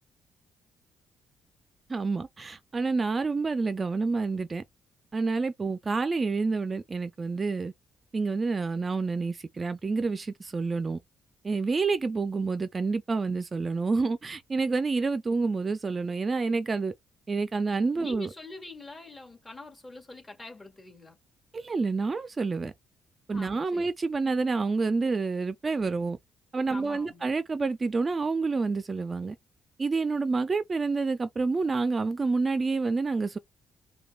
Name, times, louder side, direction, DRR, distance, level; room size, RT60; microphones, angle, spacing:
voice 1, 1.9-4.6 5.1-7.7 8.1-11.0 11.4-16.9 17.3-18.3 21.5-22.7 23.3-26.2 26.5-29.4 29.8-33.4, right 4 dB, 30° right, 0.4 m, -28 dB
voice 2, 18.0-21.2 23.3-23.9 26.7-27.2, left 2 dB, 20° left, 1.9 m, -44 dB
5.0 x 2.2 x 2.4 m
cardioid pair, 90°, 0 cm